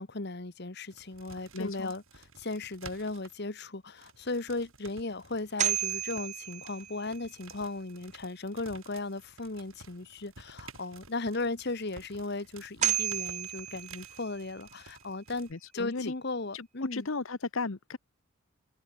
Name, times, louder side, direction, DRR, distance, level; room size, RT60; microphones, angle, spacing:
voice 1, 0.0-2.0 2.4-17.1, left 2 dB, 50° left, 1.3 m, -36 dB
sound 1, 0.9-3.4 4.0-15.5, right 4 dB, 70° right, 5.7 m, -53 dB
voice 2, 1.5-1.9 15.5-16.1 16.5-18.0, left 3 dB, 65° left, 1.0 m, -35 dB
sound 2, 5.4-7.5 12.4-12.5 12.8-14.7, right 11 dB, 30° right, 0.4 m, -33 dB
head